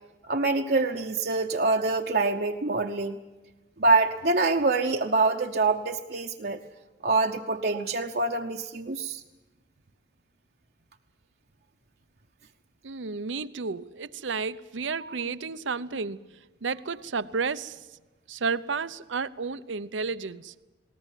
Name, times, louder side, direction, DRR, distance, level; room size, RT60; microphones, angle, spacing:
voice 1, 0.2-3.2 3.8-6.6 7.0-9.2 15.0-15.1, right 3 dB, 55° right, 2 dB, 0.9 m, -25 dB
voice 2, 12.8-16.2 16.6-17.9 18.3-20.6, right 5 dB, 85° right, 14 dB, 0.8 m, -32 dB
20.0 x 18.5 x 9.1 m, 1.1 s
head